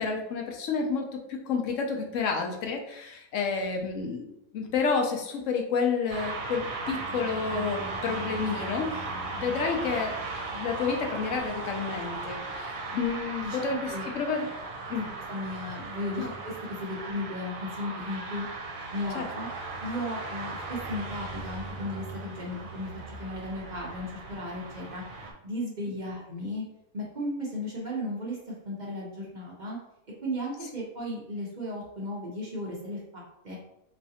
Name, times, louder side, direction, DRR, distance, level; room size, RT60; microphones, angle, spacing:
voice 1, 0.0-10.2 10.5-14.5 14.9-15.1 16.2-16.3 19.1-19.3 26.1-26.2, left 5 dB, 65° left, 2 dB, 0.9 m, -30 dB
sound 1, 6.1-25.3, right 3 dB, 70° right, 1.1 m, -37 dB
voice 2, 13.4-14.1 15.3-18.4 18.9-19.5 19.8-25.0 25.4-26.6 26.9-29.8 30.2-33.6, left 1 dB, 40° right, -4 dB, 0.7 m, -35 dB
3.7 x 3.1 x 2.8 m, 0.80 s
omnidirectional pair, 1.6 m